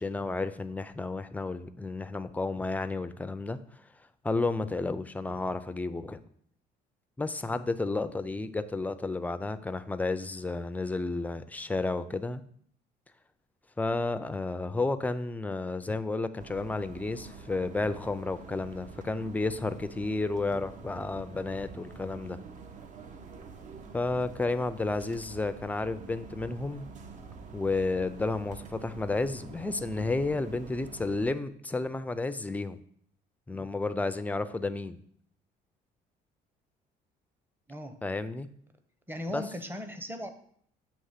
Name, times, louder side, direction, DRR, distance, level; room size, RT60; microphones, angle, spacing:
voice 1, 0.0-3.6 4.2-6.2 7.2-12.4 13.8-22.4 23.9-26.9 27.5-32.8 33.5-35.0 38.0-38.5 39.3-39.4, left 3 dB, 10° left, 11 dB, 0.4 m, -32 dB
sound 1, 16.4-31.3, right 5 dB, 45° right, 0.7 m, -47 dB
voice 2, 39.1-40.3, left 1 dB, 10° right, 7 dB, 0.8 m, -37 dB
7.8 x 3.0 x 5.7 m, 0.63 s
cardioid pair, 110°, 17 cm